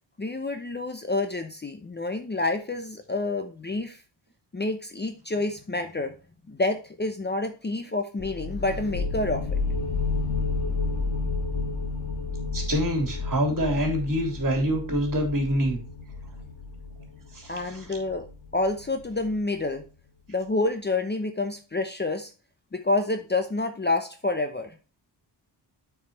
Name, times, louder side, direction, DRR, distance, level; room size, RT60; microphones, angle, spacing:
voice 1, 0.2-4.0 4.5-6.1 6.5-9.6 17.5-18.3 18.5-19.8 20.3-22.3 22.7-24.7, left 2 dB, 25° left, 7 dB, 0.8 m, -28 dB
sound 1, 8.2-19.6, left 3 dB, 60° left, 1.8 m, -31 dB
voice 2, 12.5-15.8 17.3-17.9, equal, 45° right, 2 dB, 3.3 m, -26 dB
8.4 x 4.8 x 4.3 m, 0.34 s
wide cardioid pair, 105°, 43 cm